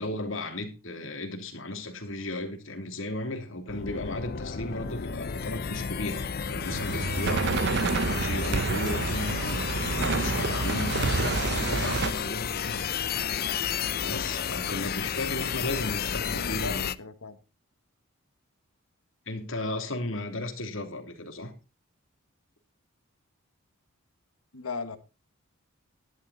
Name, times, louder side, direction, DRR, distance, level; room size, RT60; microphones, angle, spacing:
voice 1, 0.0-7.7 8.1-12.9 14.0-16.9 19.3-21.5, left 2 dB, 65° left, 2.9 m, -35 dB
sound 1, 3.7-17.0, left 7 dB, 45° left, 0.5 m, -32 dB
sound 2, 6.6-12.1, right 3 dB, 55° right, 0.7 m, -28 dB
voice 2, 16.2-17.4 24.5-25.0, left 4 dB, 85° left, 1.5 m, -37 dB
12.0 x 11.5 x 4.1 m
head